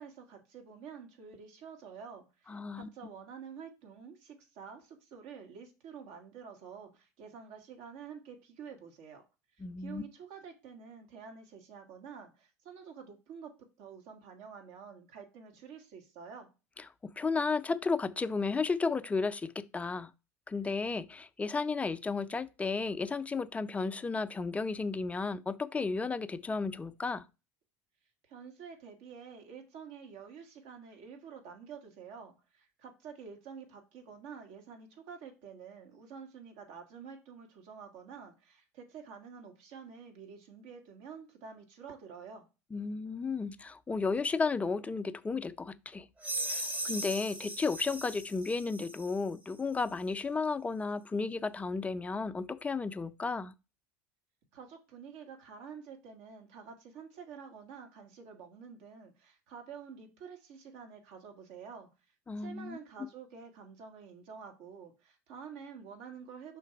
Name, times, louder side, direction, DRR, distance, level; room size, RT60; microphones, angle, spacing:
voice 1, 0.0-9.2 9.8-13.5 13.8-16.5 28.3-42.4 54.5-61.9 62.4-66.6, right 6 dB, 60° right, 1.8 m, -49 dB
voice 2, 2.5-2.9 9.6-10.0 16.8-20.1 20.5-27.2 42.7-46.1 46.5-53.5 62.3-62.8, left 4 dB, 15° left, 0.5 m, -33 dB
sound 1, 46.2-49.2, right 1 dB, 20° right, 1.0 m, -38 dB
5.7 x 3.9 x 4.5 m
hypercardioid pair, 80°, 9 cm